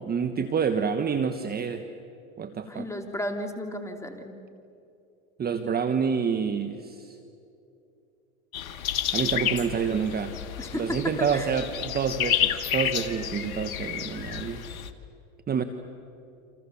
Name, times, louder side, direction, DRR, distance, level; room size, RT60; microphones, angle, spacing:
voice 1, 0.0-1.9 2.4-2.9 5.4-7.2 9.1-10.4 10.7-14.6 15.5-15.6, right 6 dB, 20° right, 8 dB, 1.3 m, -28 dB
voice 2, 2.7-4.3 10.6-11.5, left 1 dB, 5° left, 4 dB, 3.1 m, -33 dB
sound 1, 8.5-14.9, left 9 dB, 80° left, 1.8 m, -30 dB
29.0 x 27.0 x 7.1 m, 2.7 s
hypercardioid pair, 105°, 41 cm